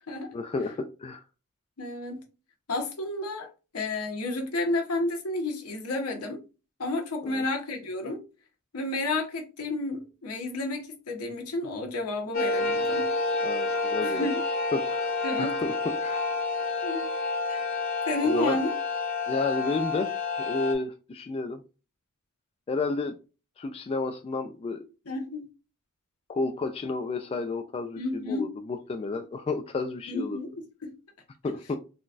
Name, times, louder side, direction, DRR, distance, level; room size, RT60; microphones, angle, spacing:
voice 1, 0.3-1.2 7.2-7.4 13.4-14.3 14.7-15.1 15.4-16.2 18.2-18.6 19.3-20.1 20.4-21.6 22.7-23.2 23.6-24.8 26.3-30.4 31.4-31.8, left 3 dB, 25° left, 0.3 m, -31 dB
voice 2, 1.8-2.2 2.7-6.4 6.8-8.2 8.7-13.1 14.0-14.4 15.2-15.6 16.8-17.1 17.5-17.6 18.1-18.7 25.1-25.5 28.0-28.5 30.1-31.0, left 2 dB, 75° left, 0.9 m, -31 dB
sound 1, 12.3-20.7, left 3 dB, 45° left, 0.7 m, -29 dB
3.9 x 2.2 x 2.5 m
head